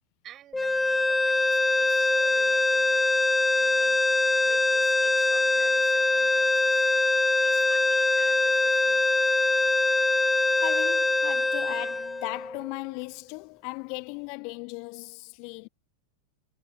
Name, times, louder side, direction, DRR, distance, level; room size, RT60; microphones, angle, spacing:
voice 1, 0.2-3.1 3.3-4.0 4.4-6.9 7.4-9.0, right 12 dB, 30° right, 5.9 m, -50 dB
sound 1, 0.5-12.8, left 2 dB, 5° left, 0.5 m, -23 dB
voice 2, 10.6-15.7, left 34 dB, 45° left, 1.1 m, -37 dB
figure-of-eight pair, 90°, 0 cm